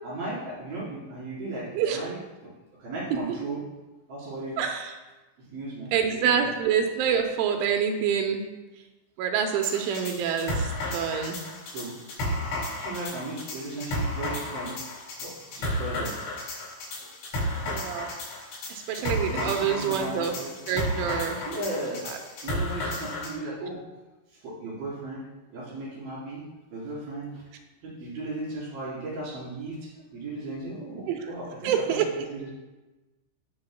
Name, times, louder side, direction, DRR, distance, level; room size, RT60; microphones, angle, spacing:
voice 1, 0.0-2.5 2.8-3.6 4.1-4.6 5.5-6.5 11.7-12.1 12.8-14.8 15.2-16.1 17.0-17.1 19.0-20.5 21.4-22.1 22.4-23.8 24.4-25.2 25.5-26.5 26.7-27.4 27.8-32.5, right 2 dB, 50° right, -7 dB, 5.2 m, -36 dB
voice 2, 4.6-4.9 5.9-8.4 9.2-11.4 17.7-18.1 18.7-20.4 20.7-21.4 22.1-22.2 31.1-31.3 31.6-32.1, right 7 dB, 80° right, 4 dB, 3.1 m, -26 dB
sound 1, 9.6-23.3, left 1 dB, 90° left, 6.4 m, -33 dB
20.0 x 6.7 x 2.2 m, 1.1 s
omnidirectional pair, 5.6 m